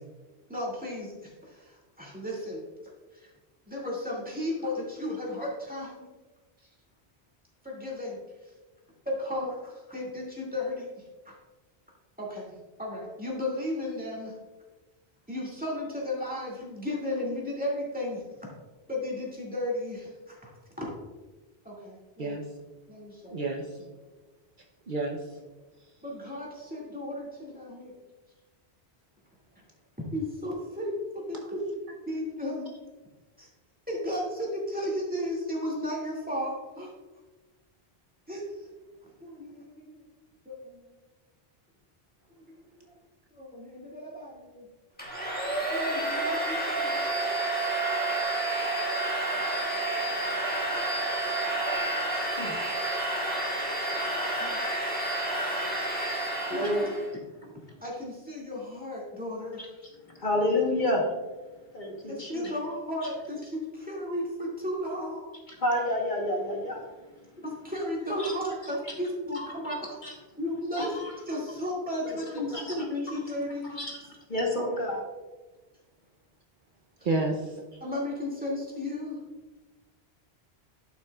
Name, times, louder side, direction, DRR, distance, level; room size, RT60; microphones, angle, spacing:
voice 1, 0.5-2.6 3.1-3.3 3.7-5.9 7.6-8.5 9.1-10.9 11.3-11.4 12.2-12.5 12.8-14.3 15.3-18.2 18.9-20.5 20.8-20.9 21.6-22.4 22.9-23.4 26.0-27.9 30.1-31.8 32.1-32.7 33.4-33.5 33.9-36.9 38.3-38.4 39.2-40.0 40.5-41.0 42.3-42.4 42.8-42.9 43.3-44.7 45.7-47.0 54.4-54.6 56.5-56.6 57.8-59.7 62.1-65.2 67.4-69.9 70.4-70.9 71.3-73.8 77.8-79.2, left 1 dB, 10° right, -5 dB, 2.1 m, -34 dB
voice 2, 23.3-23.7 24.9-25.2 77.0-77.6, right 2 dB, 55° right, 1 dB, 0.8 m, -29 dB
Domestic sounds home sounds, 45.0-57.1, right 2 dB, 10° left, 1.6 m, -29 dB
voice 3, 56.5-57.0 60.2-61.0 61.7-62.5 65.6-66.8 68.2-68.4 69.3-69.7 70.0-70.1 70.8-71.1 72.0-72.7 73.7-74.0 74.3-75.0, left 1 dB, 50° left, 0 dB, 1.3 m, -29 dB
11.0 x 6.0 x 2.3 m, 1.2 s
omnidirectional pair, 1.1 m